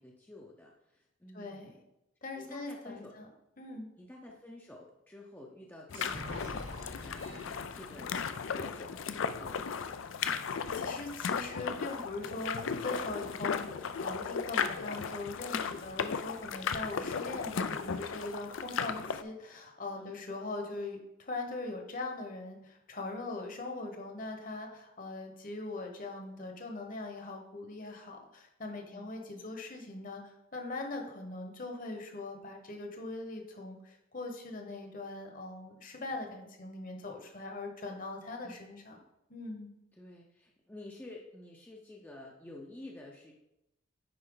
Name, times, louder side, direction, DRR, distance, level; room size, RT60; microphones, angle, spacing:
voice 1, 0.0-1.8 2.3-3.1 4.0-8.2 8.5-10.0 20.0-20.2 28.9-29.1 38.4-38.6 39.9-43.3, left 1 dB, 10° left, -2 dB, 0.6 m, -50 dB
voice 2, 1.3-1.8 2.2-3.3 3.6-3.9 10.4-30.2 30.5-39.0 39.3-39.7, left 2 dB, 40° left, 3 dB, 1.2 m, -41 dB
sound 1, 5.9-19.2, left 6 dB, 70° left, 0.5 m, -36 dB
sound 2, 5.9-9.6, equal, 70° right, 2.3 m, -48 dB
9.7 x 4.4 x 3.9 m, 0.88 s
head